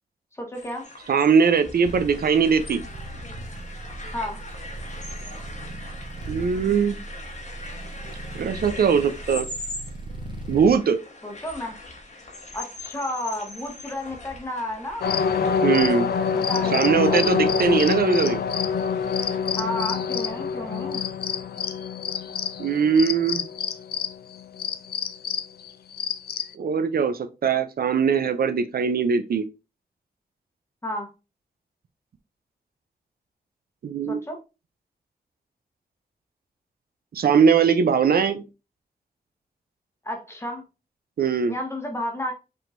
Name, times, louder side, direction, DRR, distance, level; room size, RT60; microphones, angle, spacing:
voice 1, 0.3-0.9 4.1-4.4 11.2-11.8 12.5-15.2 16.3-17.8 19.6-21.0 30.8-31.1 34.1-34.4 40.0-40.6 41.5-42.3, left 1 dB, 15° left, 1.0 m, -32 dB
sound 1, 0.5-19.4, left 2 dB, 45° left, 1.1 m, -42 dB
voice 2, 1.1-2.8 6.3-7.0 8.3-9.5 10.5-11.0 15.6-16.1 16.7-18.4 22.6-23.4 26.5-29.4 33.8-34.2 37.1-38.4 41.2-41.6, right 6 dB, 70° right, 0.5 m, -21 dB
sound 2, 1.8-10.8, right 2 dB, 30° right, 0.7 m, -38 dB
sound 3, 15.0-26.5, left 6 dB, 75° left, 0.4 m, -26 dB
5.3 x 3.7 x 2.5 m
wide cardioid pair, 175°, 17 cm